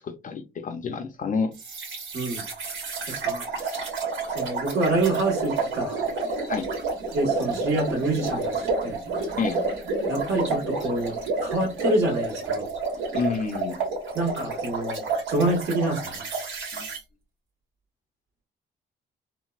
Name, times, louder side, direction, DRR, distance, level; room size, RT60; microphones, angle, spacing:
voice 1, 0.0-1.5 6.5-6.7 9.4-9.6 13.1-13.8 16.7-16.9, left 5 dB, 40° left, 0.5 m, -29 dB
sound 1, 1.6-17.0, right 3 dB, 80° right, 1.2 m, -30 dB
voice 2, 2.1-2.4 3.1-3.8 4.3-6.0 7.1-9.0 10.1-11.1 11.4-12.7 14.1-16.3, right 2 dB, 60° right, 1.4 m, -27 dB
3.8 x 2.1 x 2.3 m
cardioid pair, 90°, 20 cm